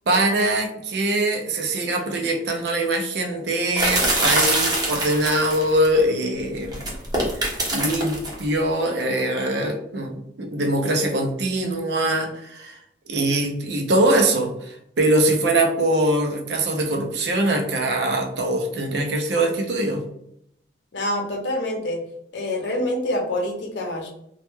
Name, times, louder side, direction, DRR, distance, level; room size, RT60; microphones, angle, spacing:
voice 1, 0.1-6.9 7.3-7.4 7.7-12.8 13.1-20.0, right 1 dB, 70° right, 3 dB, 0.5 m, -22 dB
sound 1, 3.8-5.9 6.7-8.4, right 1 dB, 20° right, 0.6 m, -23 dB
voice 2, 20.9-22.0 22.3-24.1, left 1 dB, 75° left, 0 dB, 0.6 m, -26 dB
2.2 x 2.1 x 3.0 m, 0.76 s
head